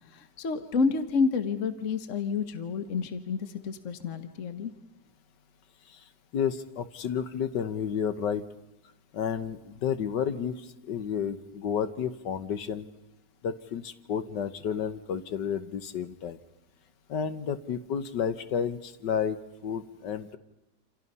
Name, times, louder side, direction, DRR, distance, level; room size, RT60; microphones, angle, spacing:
voice 1, 0.1-4.7, left 5 dB, 50° left, 9 dB, 1.4 m, -29 dB
voice 2, 6.3-8.4 9.1-12.9 13.4-16.4 17.1-19.4 19.6-20.4, left 7 dB, 85° left, 11 dB, 1.8 m, -31 dB
28.5 x 27.0 x 5.5 m, 0.90 s
omnidirectional pair, 1.9 m